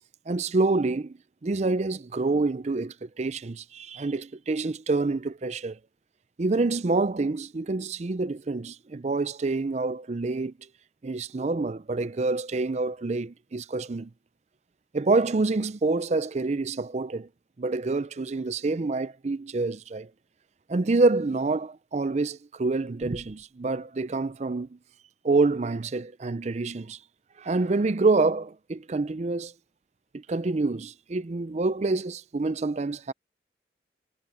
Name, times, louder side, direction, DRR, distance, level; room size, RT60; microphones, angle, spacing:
voice 1, 0.3-5.8 6.4-10.5 11.0-14.1 14.9-17.3 17.6-20.1 20.7-24.8 25.2-27.0 27.4-29.5 30.1-33.1, right 3 dB, 35° right, 0.5 m, -27 dB
head